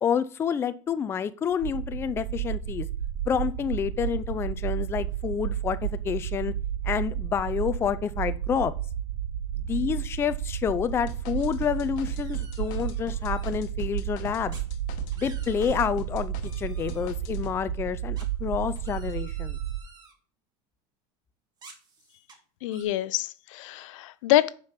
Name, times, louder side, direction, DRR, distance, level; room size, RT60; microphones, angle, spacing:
voice 1, 0.0-2.9 3.3-6.5 6.8-8.7 9.6-14.5 15.2-19.6, left 7 dB, 15° left, 0.4 m, -29 dB
sound 1, 1.5-19.8, right 10 dB, 90° right, 0.8 m, -32 dB
sound 2, 11.1-16.6 16.9-17.5, left 10 dB, 50° left, 1.2 m, -45 dB
sound 3, 11.4-11.6 12.0-13.5 14.5-14.6 15.0-15.9 16.4-17.1 18.2-20.1 21.6-22.4 22.7-22.8, right 4 dB, 25° right, 1.8 m, -52 dB
voice 2, 22.6-24.5, left 15 dB, 85° left, 0.6 m, -26 dB
7.2 x 5.2 x 5.7 m
supercardioid pair, 160°, 16 cm